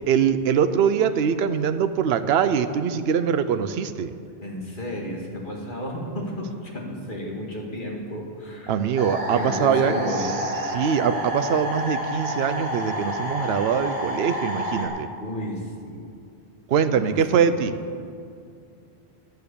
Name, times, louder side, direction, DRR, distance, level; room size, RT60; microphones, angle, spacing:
voice 1, 0.1-4.1 8.7-9.9 10.7-15.1 16.7-17.8, right 7 dB, 70° right, 10 dB, 0.9 m, -23 dB
voice 2, 4.4-8.8 9.3-10.4 15.2-16.0 16.9-17.6, left 1 dB, 50° left, -1 dB, 2.0 m, -33 dB
sound 1, 9.0-14.9, equal, 30° right, 2.2 m, -29 dB
12.5 x 7.9 x 6.9 m, 2.4 s
omnidirectional pair, 1.1 m